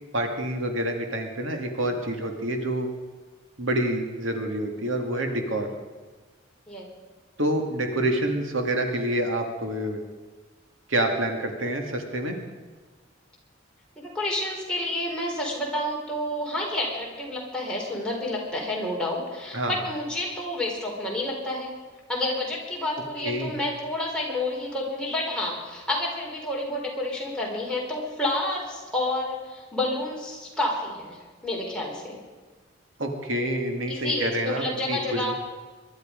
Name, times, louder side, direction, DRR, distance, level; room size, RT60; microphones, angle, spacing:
voice 1, 0.1-2.9 3.6-5.7 7.4-10.0 10.9-12.4 19.5-19.8 23.2-23.5 33.0-35.3, right 1 dB, 80° right, 4 dB, 2.2 m, -27 dB
voice 2, 14.0-21.7 22.1-32.2 33.9-35.3, left 1 dB, 5° left, -3 dB, 3.9 m, -29 dB
23.0 x 12.0 x 5.2 m, 1.4 s
head